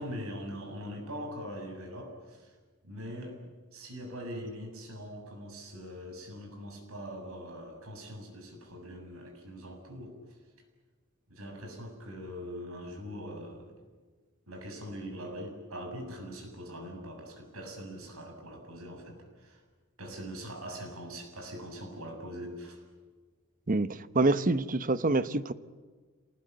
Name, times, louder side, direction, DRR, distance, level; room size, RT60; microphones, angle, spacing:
voice 1, 0.0-2.5 2.8-3.4 3.7-10.2 11.3-13.7 14.5-19.6 20.0-22.8, equal, 90° right, 4 dB, 7.4 m, -42 dB
voice 2, 23.7-25.5, right 2 dB, 40° right, 13 dB, 0.9 m, -26 dB
27.0 x 20.0 x 9.4 m, 1.4 s
head